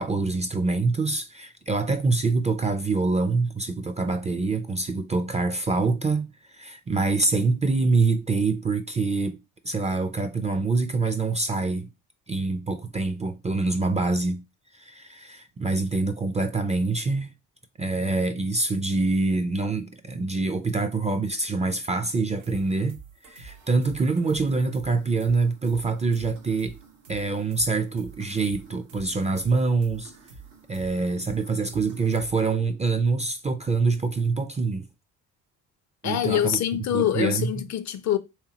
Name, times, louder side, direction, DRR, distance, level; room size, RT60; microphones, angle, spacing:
voice 1, 0.0-9.4 9.6-11.9 12.3-14.4 14.7-17.3 17.8-23.0 23.3-26.7 27.1-30.1 30.7-34.9 36.0-36.6 36.9-37.5, right 3 dB, 15° right, 0.4 m, -25 dB
sound 1, 22.4-32.5, right 4 dB, 90° right, 1.0 m, -48 dB
voice 2, 36.0-38.2, left 11 dB, 45° left, 0.5 m, -25 dB
3.3 x 3.0 x 2.8 m
hypercardioid pair, 60°, 42 cm